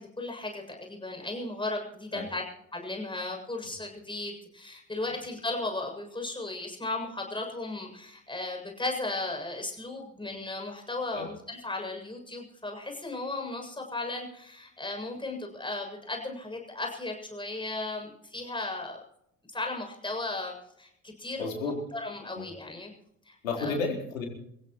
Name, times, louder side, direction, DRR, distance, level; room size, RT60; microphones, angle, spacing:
voice 1, 0.0-2.4 2.7-19.0 19.5-22.9 23.3-23.8, left 2 dB, 10° left, 2 dB, 7.3 m, -36 dB
voice 2, 21.4-21.7 22.4-22.5 23.4-24.3, left 4 dB, 75° left, 1 dB, 4.3 m, -32 dB
27.5 x 16.0 x 3.1 m, 0.74 s
figure-of-eight pair, 55°, 41 cm